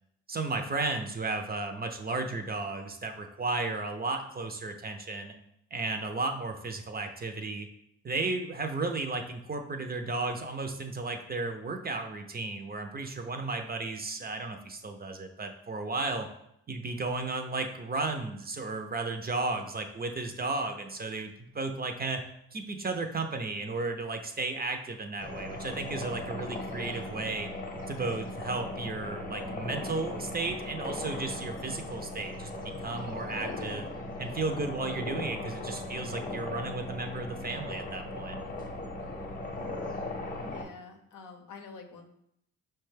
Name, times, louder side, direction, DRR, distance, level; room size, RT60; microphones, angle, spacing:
voice 1, 0.3-5.3 5.7-7.7 8.0-16.3 16.7-22.2 22.5-27.5 27.9-33.9 34.2-38.4, right 3 dB, 30° right, 5 dB, 0.5 m, -34 dB
sound 1, 25.2-40.6, left 2 dB, 25° left, 0.9 m, -38 dB
voice 2, 40.5-42.1, left 5 dB, 65° left, 5 dB, 0.7 m, -47 dB
5.2 x 2.2 x 3.2 m, 0.75 s
supercardioid pair, 60°, 34 cm